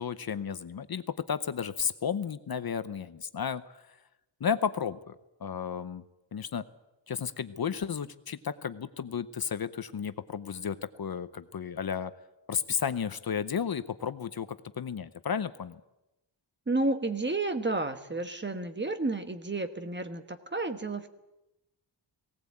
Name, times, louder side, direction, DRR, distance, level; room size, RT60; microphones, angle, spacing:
voice 1, 0.0-4.0 4.4-6.0 6.3-6.7 7.1-12.1 12.5-15.8, left 7 dB, 50° left, 12 dB, 0.8 m, -33 dB
voice 2, 16.7-21.1, right 2 dB, 25° right, 8 dB, 1.2 m, -31 dB
18.5 x 18.0 x 8.5 m, 0.94 s
wide cardioid pair, 170°, 46 cm